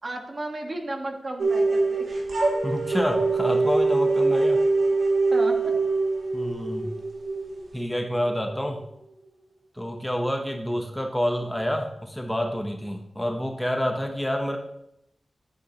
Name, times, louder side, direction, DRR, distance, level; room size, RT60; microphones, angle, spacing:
voice 1, 0.0-2.1 5.3-5.7, right 1 dB, 40° right, 3 dB, 1.4 m, -33 dB
sound 1, 1.4-8.3, right 3 dB, 80° right, 2.3 m, -23 dB
voice 2, 2.6-4.6 6.3-6.9 7.7-8.8 9.8-14.6, equal, 5° left, 3 dB, 0.9 m, -28 dB
11.5 x 8.2 x 2.9 m, 0.80 s
wide cardioid pair, 110°, 0 cm